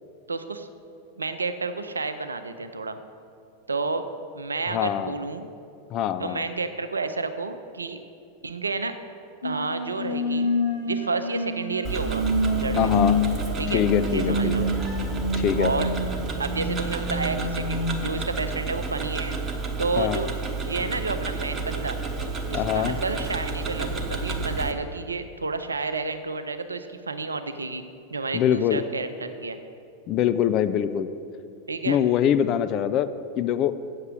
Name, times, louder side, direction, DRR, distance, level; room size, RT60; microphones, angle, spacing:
voice 1, 0.3-0.7 1.2-3.0 3.7-4.0 4.3-5.5 6.2-8.0 8.4-8.9 9.4-10.5 10.9-12.2 12.5-13.1 13.6-13.8 14.1-14.7 15.6-15.9 16.4-19.4 19.8-20.3 20.6-22.0 22.5-27.8 28.1-29.6 31.7-32.0, right 3 dB, 75° right, 9 dB, 0.5 m, -30 dB
voice 2, 4.7-5.1 5.9-6.4 12.8-13.2 13.7-14.7 15.4-15.7 20.0-20.2 22.5-22.9 28.3-28.8 30.1-31.1 31.9-33.1 33.4-33.8, left 10 dB, 35° left, 11 dB, 0.4 m, -23 dB
sound 1, 9.4-17.9, left 1 dB, 70° left, 1.4 m, -27 dB
Tick-tock, 11.8-24.7, right 3 dB, 20° right, 1.0 m, -31 dB
8.0 x 6.7 x 7.5 m, 2.5 s
figure-of-eight pair, 90°, 0 cm